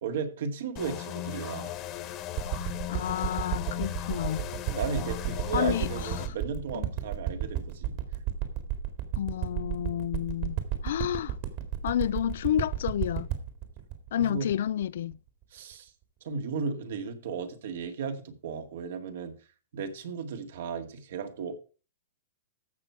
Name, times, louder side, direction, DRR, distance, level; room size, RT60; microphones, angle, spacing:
voice 1, 0.0-1.7 4.6-8.0 14.2-14.5 15.5-15.9 16.2-19.3 19.7-21.6, right 5 dB, 65° right, 2.1 m, -35 dB
sound 1, 0.8-6.3, left 13 dB, 25° left, 1.4 m, -37 dB
sound 2, 2.4-15.1 15.7-15.8, right 11 dB, 40° right, 2.1 m, -32 dB
voice 2, 2.9-4.5 5.5-5.9 6.8-6.9 9.2-11.4 11.8-13.3 14.1-15.2, left 10 dB, 65° left, 0.4 m, -30 dB
14.5 x 6.1 x 4.7 m
hypercardioid pair, 160°, 0 cm